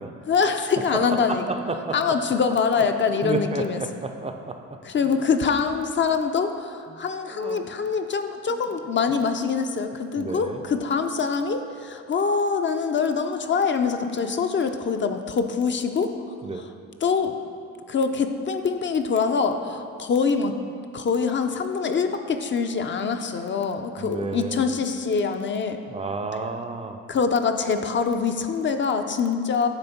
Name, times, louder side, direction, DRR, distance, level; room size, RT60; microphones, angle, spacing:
voice 1, 0.3-1.4 1.9-3.8 4.9-16.1 17.0-17.3 17.9-20.6 20.9-25.8 27.1-29.7, left 5 dB, 40° left, 7 dB, 0.5 m, -24 dB
voice 2, 1.3-2.0 3.2-5.1 6.9-7.7 8.5-8.7 10.2-10.6 16.4-16.6 24.0-24.7 25.9-27.0, right 3 dB, 20° right, 5 dB, 0.4 m, -32 dB
8.9 x 3.5 x 5.8 m, 2.4 s
cardioid pair, 90°, 30 cm